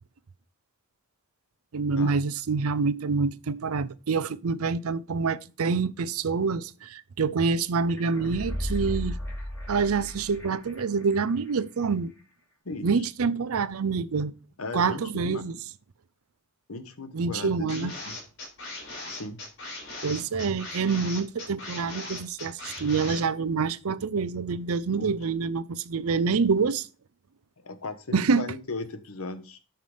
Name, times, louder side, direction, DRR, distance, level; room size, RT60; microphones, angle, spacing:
voice 1, 1.7-9.2 9.7-12.1 12.8-14.3 14.7-15.6 17.1-17.9 20.0-26.9 28.1-28.5, right 5 dB, 75° right, 0.5 m, -26 dB
sound 1, 7.9-10.8 11.1-11.2, equal, 10° left, 3.9 m, -34 dB
voice 2, 14.6-15.4 16.7-18.2 19.1-19.4 25.0-25.1 27.6-29.6, left 3 dB, 75° left, 1.2 m, -37 dB
sound 2, 17.7-23.2, left 2 dB, 55° left, 4.0 m, -39 dB
8.5 x 5.8 x 5.1 m
head